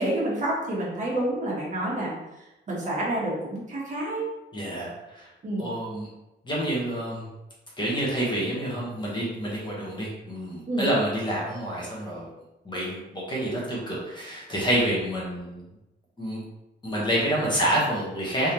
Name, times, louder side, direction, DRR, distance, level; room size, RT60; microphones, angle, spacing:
voice 1, 0.0-2.1 2.7-4.2 5.4-5.7 10.7-10.9, right 1 dB, 40° right, -6 dB, 1.3 m, -28 dB
voice 2, 4.5-5.3 5.6-6.1 6.4-7.3 7.8-12.3 12.6-15.6 16.2-16.4 16.8-18.5, right 1 dB, 25° left, -5 dB, 1.1 m, -28 dB
3.7 x 3.4 x 2.9 m, 0.96 s
wide cardioid pair, 155°, 20 cm